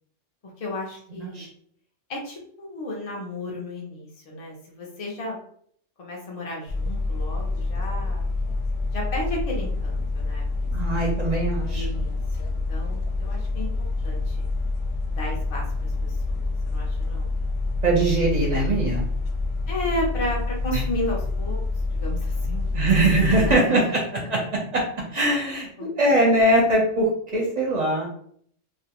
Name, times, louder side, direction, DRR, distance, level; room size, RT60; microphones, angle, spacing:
voice 1, 0.6-1.5 2.1-5.4 6.0-8.2 8.9-10.7 11.7-13.7 14.0-14.4 15.1-17.4 19.7-21.6 21.9-22.6 23.1-23.8 24.2-24.3 25.8-26.3, left 1 dB, 50° left, -3 dB, 0.4 m, -33 dB
sound 1, 6.7-23.6, left 3 dB, 65° left, 0.8 m, -27 dB
voice 2, 10.7-11.9 17.8-19.0 22.7-24.8 25.1-28.1, right 1 dB, 50° right, -2 dB, 0.5 m, -22 dB
2.4 x 2.0 x 2.8 m, 0.63 s
omnidirectional pair, 1.2 m